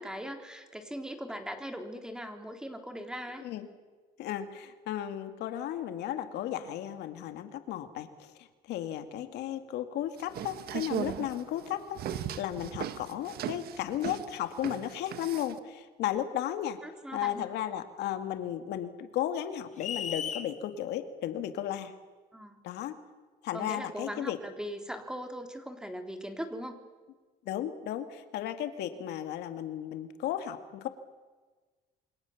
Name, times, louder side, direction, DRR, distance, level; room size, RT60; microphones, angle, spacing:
voice 1, 0.0-3.4 16.8-17.5 22.3-22.6 23.5-26.8, equal, 5° right, 5 dB, 3.5 m, -40 dB
voice 2, 4.2-8.3 8.7-16.8 17.1-21.9 22.6-23.0 23.4-24.4 27.5-30.9, left 11 dB, 80° left, 8 dB, 2.3 m, -34 dB
sound 1, 10.2-15.6, right 10 dB, 65° right, 1.6 m, -37 dB
sound 2, 19.8-20.5, left 7 dB, 45° left, 2.4 m, -35 dB
28.0 x 25.0 x 7.3 m, 1.3 s
cardioid pair, 110°, 17 cm